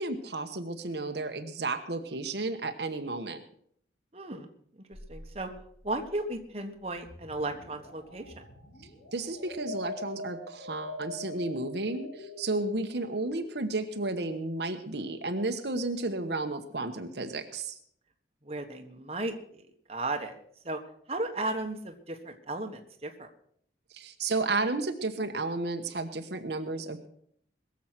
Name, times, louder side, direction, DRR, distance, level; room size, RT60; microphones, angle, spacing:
voice 1, 0.0-3.4 9.1-17.8 23.9-27.1, right 2 dB, 65° right, 6 dB, 1.2 m, -32 dB
voice 2, 4.1-4.5 5.1-5.5 5.8-8.4 18.4-20.4 20.6-20.8 21.1-23.3, right 2 dB, 35° right, 4 dB, 1.4 m, -35 dB
sound 1, 4.9-13.6, left 2 dB, 75° left, 3.5 m, -44 dB
21.5 x 7.4 x 6.0 m, 0.66 s
head